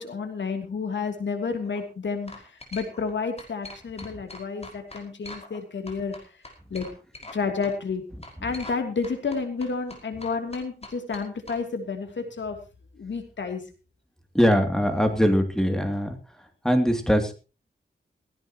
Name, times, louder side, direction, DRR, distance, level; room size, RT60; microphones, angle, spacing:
voice 1, 0.0-6.2 6.7-6.9 7.3-8.0 8.4-12.6 12.9-13.6, left 5 dB, 85° left, 5 dB, 2.9 m, -30 dB
sound 1, 1.5-1.8 2.3-3.1 3.4-5.6 5.9-7.4 7.6-7.7 8.2-8.8 9.0-11.6, left 2 dB, 35° left, 5.3 m, -43 dB
voice 2, 14.3-16.2 16.6-17.3, equal, 5° left, 6 dB, 2.7 m, -21 dB
18.0 x 16.5 x 3.0 m, 0.33 s
wide cardioid pair, 90°, 18 cm